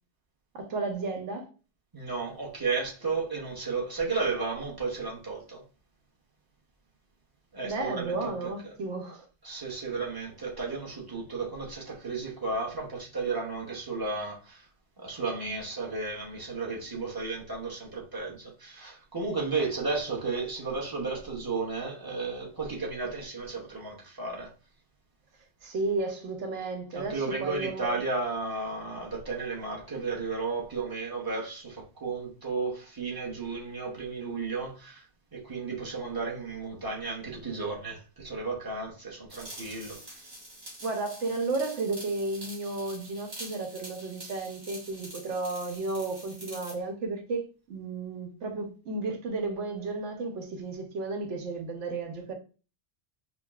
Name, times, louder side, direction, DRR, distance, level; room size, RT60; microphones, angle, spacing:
voice 1, 0.5-1.5 7.6-9.2 25.6-28.0 40.8-52.3, right 3 dB, 90° right, 1.1 m, -33 dB
voice 2, 1.9-5.6 7.5-8.7 9.4-14.6 15.0-24.5 26.9-35.0 35.3-40.2, right 4 dB, 20° right, 0.8 m, -33 dB
sound 1, 39.3-46.8, right 1 dB, 65° right, 1.8 m, -46 dB
5.0 x 2.2 x 2.3 m
omnidirectional pair, 1.2 m